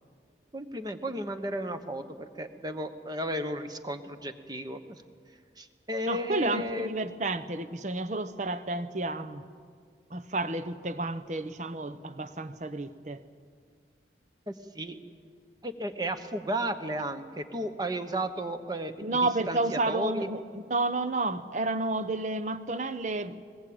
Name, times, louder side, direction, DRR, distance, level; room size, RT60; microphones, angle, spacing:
voice 1, 0.5-5.0 5.6-6.9 14.5-14.9 15.6-19.0 19.5-20.3, right 1 dB, 20° right, 8 dB, 1.1 m, -34 dB
voice 2, 6.0-9.4 10.1-13.2 19.0-23.4, right 2 dB, 40° right, 12 dB, 0.9 m, -31 dB
20.5 x 20.5 x 8.8 m, 2.1 s
head